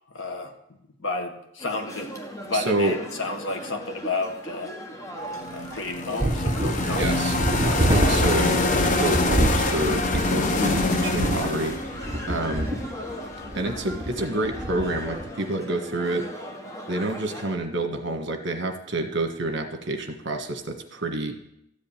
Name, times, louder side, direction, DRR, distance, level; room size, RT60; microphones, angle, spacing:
voice 1, 0.1-0.5 1.0-2.1 2.4-4.7 5.5-7.3, left 2 dB, 65° left, 3 dB, 1.8 m, -31 dB
sound 1, 1.6-17.6, equal, 15° left, 1.3 m, -38 dB
voice 2, 2.5-2.9 6.9-11.8 12.3-12.7 13.5-16.3 16.9-21.3, right 2 dB, 55° right, 5 dB, 1.5 m, -28 dB
sound 2, 5.3-13.4, left 2 dB, 35° left, 0.9 m, -26 dB
sound 3, 6.2-15.2, right 1 dB, 25° right, 1.1 m, -27 dB
13.5 x 5.2 x 8.8 m, 0.79 s
head